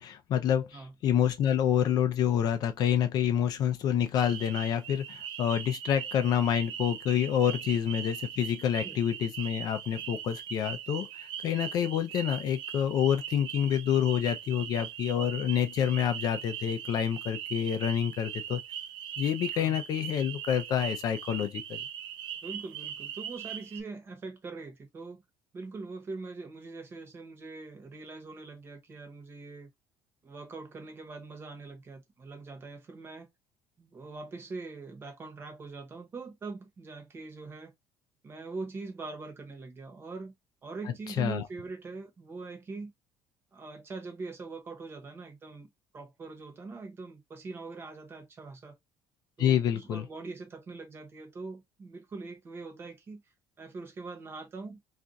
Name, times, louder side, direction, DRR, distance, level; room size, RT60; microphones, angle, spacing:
voice 1, 0.0-18.6 19.2-21.8 41.2-41.4 49.4-50.0, left 9 dB, 45° left, 0.4 m, -28 dB
sound 1, 4.1-23.8, right 9 dB, 60° right, 0.4 m, -40 dB
voice 2, 22.4-25.2 25.5-29.7 30.2-33.3 33.8-37.7 38.2-40.3 40.6-42.9 43.5-48.8 49.4-53.2 53.6-54.8, right 3 dB, 25° right, 0.9 m, -42 dB
2.4 x 2.2 x 3.9 m
cardioid pair, 170°, 9 cm